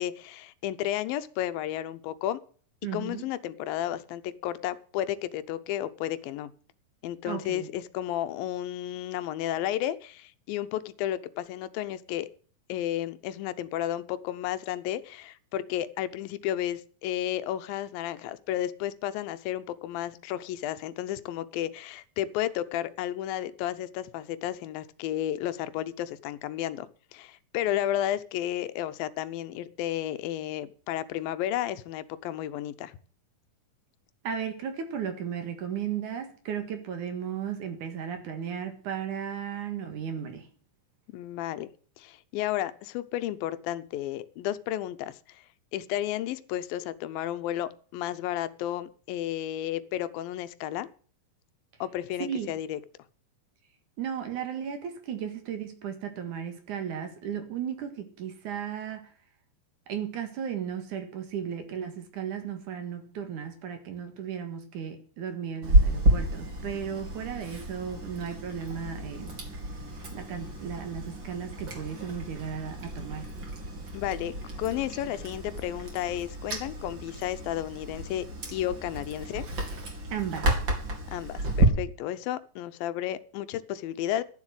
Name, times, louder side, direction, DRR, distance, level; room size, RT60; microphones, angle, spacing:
voice 1, 0.0-2.4 2.9-6.5 7.0-12.3 12.7-26.9 27.1-33.0 41.1-41.7 42.0-45.5 45.7-50.9 51.8-52.8 73.9-78.3 78.5-79.4 81.1-84.2, left 12 dB, 90° left, 2.6 m, -32 dB
voice 2, 2.8-3.2 7.2-7.7 34.2-40.5 52.2-52.5 54.0-59.1 59.9-69.4 70.1-73.3 80.1-80.5, right 8 dB, 65° right, 3.0 m, -35 dB
Chewing mastication, 65.6-81.7, right 1 dB, 35° right, 3.0 m, -30 dB
12.5 x 7.4 x 7.9 m
omnidirectional pair, 4.0 m